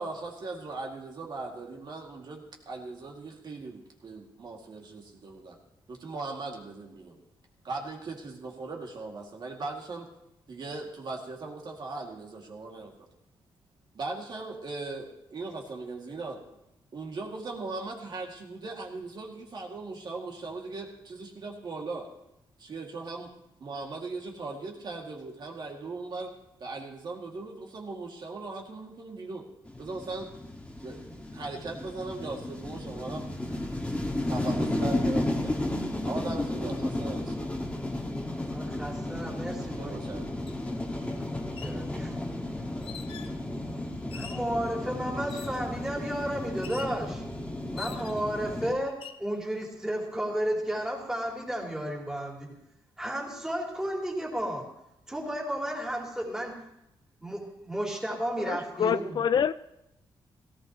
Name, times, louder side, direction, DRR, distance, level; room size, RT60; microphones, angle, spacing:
voice 1, 0.0-5.6 5.9-7.2 7.6-10.1 10.5-13.1 13.9-16.4 16.9-22.1 22.6-23.3 23.6-26.3 26.6-29.5 29.8-30.3 30.8-31.0 31.3-33.6 34.3-35.5 36.0-37.4 39.8-40.3, right 3 dB, 50° right, 0 dB, 2.3 m, -39 dB
sound 1, 29.7-48.7, left 1 dB, 15° left, 1.8 m, -33 dB
voice 2, 38.5-40.0 41.0-41.2 41.6-42.2 44.0-47.2 47.7-52.5 53.0-54.7 55.1-56.6 57.2-59.2, right 1 dB, 5° right, -2 dB, 3.3 m, -33 dB
sound 2, 40.5-40.6 41.4-41.8 42.8-43.4 44.1-44.5 45.3-45.7 46.6-47.0 47.8-48.3 48.9-49.3, left 9 dB, 80° left, 0.8 m, -44 dB
voice 3, 58.4-59.5, left 8 dB, 55° left, 14 dB, 0.3 m, -26 dB
17.5 x 15.0 x 3.1 m, 0.84 s
cardioid pair, 110°, 9 cm